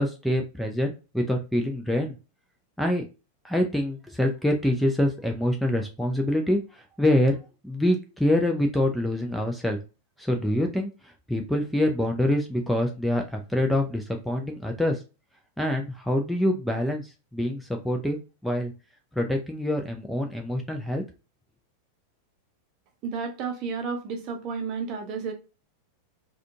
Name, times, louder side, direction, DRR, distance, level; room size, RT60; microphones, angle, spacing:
voice 1, 0.0-2.2 2.8-3.0 3.4-7.4 7.6-9.8 10.2-15.0 15.6-18.7 19.1-21.0, left 1 dB, ahead, 0.5 m, -25 dB
voice 2, 23.0-25.3, right 5 dB, 40° right, 0.7 m, -31 dB
3.6 x 2.3 x 2.5 m
figure-of-eight pair, 90°, 0 cm